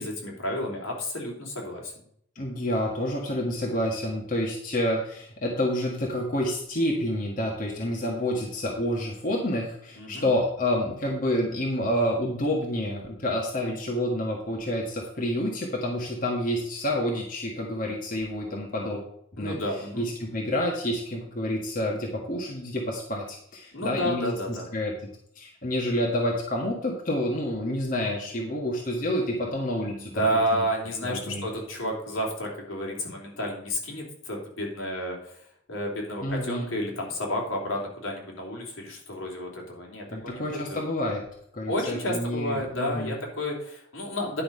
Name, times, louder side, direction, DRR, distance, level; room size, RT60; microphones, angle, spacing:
voice 1, 0.0-1.9 10.0-10.3 19.4-20.0 23.7-24.7 29.7-40.8 41.7-44.4, equal, 80° left, -1 dB, 3.2 m, -31 dB
voice 2, 2.3-19.0 19.4-19.5 20.0-24.9 25.3-30.6 31.0-31.5 36.2-36.7 40.1-41.2 41.5-43.2, left 1 dB, 40° left, -1 dB, 1.6 m, -28 dB
10.5 x 5.7 x 5.5 m, 0.68 s
head